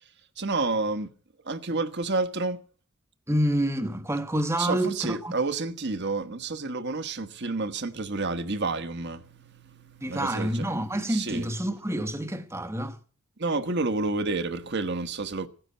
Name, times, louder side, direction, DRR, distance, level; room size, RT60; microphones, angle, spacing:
voice 1, 0.4-1.1 1.4-2.6 4.6-10.6 11.1-11.5 13.4-15.5, right 3 dB, 50° right, 1.3 m, -30 dB
voice 2, 3.3-5.3 10.0-13.0, right 1 dB, 10° right, 1.1 m, -28 dB
17.0 x 10.0 x 8.0 m
head